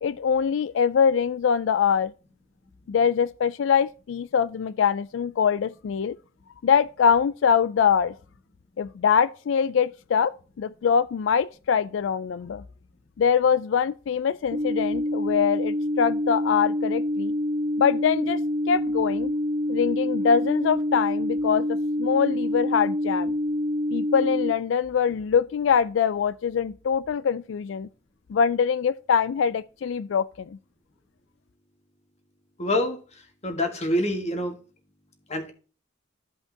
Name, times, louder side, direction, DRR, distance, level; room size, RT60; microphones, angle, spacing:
voice 1, 0.0-2.1 2.9-6.2 6.6-8.1 8.8-12.6 13.2-17.3 17.8-18.4 18.7-19.3 19.7-23.3 23.9-27.9 28.3-30.6, left 7 dB, 70° left, 0.3 m, -23 dB
sound 1, 14.5-24.5, left 1 dB, 50° right, 1.0 m, -26 dB
voice 2, 32.6-33.0 33.4-34.6 35.3-35.5, left 1 dB, 35° left, 1.6 m, -26 dB
14.0 x 5.3 x 2.8 m
head